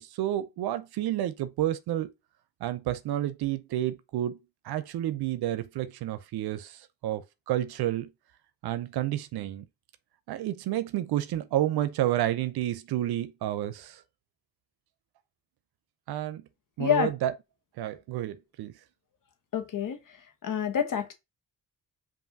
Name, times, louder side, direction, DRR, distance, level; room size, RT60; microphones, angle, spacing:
voice 1, 0.0-2.1 2.6-4.4 4.6-8.1 8.6-9.6 10.3-14.0 16.1-16.4 16.8-17.3 17.8-18.7, right 13 dB, 80° right, 0.6 m, -30 dB
voice 2, 16.8-17.1 19.5-20.0 20.4-21.1, left 8 dB, 55° left, 1.0 m, -27 dB
5.4 x 2.6 x 2.7 m
cardioid pair, 65°, 38 cm